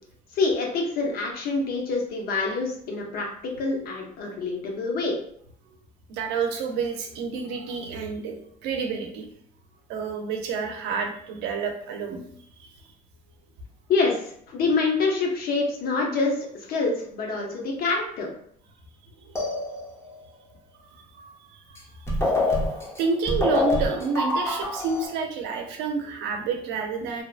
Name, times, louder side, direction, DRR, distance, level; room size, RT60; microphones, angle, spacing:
voice 1, 0.3-5.2 13.9-18.3, left 3 dB, 65° left, 1 dB, 0.7 m, -26 dB
voice 2, 6.1-8.4 8.6-9.3 9.9-12.2 12.6-12.7 21.1-21.8 22.4-27.2, right 5 dB, 90° right, 3 dB, 0.5 m, -29 dB
sound 1, 19.4-20.2 21.8-21.9 22.1-25.1, left 2 dB, 15° left, 0.7 m, -26 dB
2.8 x 2.2 x 2.4 m, 0.66 s
cardioid pair, 110°, 17 cm